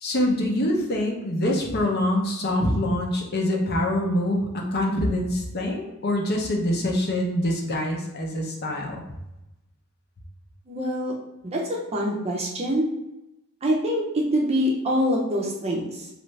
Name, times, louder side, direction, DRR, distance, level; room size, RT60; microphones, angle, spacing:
voice 1, 0.0-9.0, left 1 dB, 45° left, -1 dB, 0.6 m, -25 dB
voice 2, 10.7-11.1 11.4-12.9 13.6-16.1, equal, 30° right, -2 dB, 0.6 m, -25 dB
3.0 x 2.5 x 3.2 m, 0.93 s
head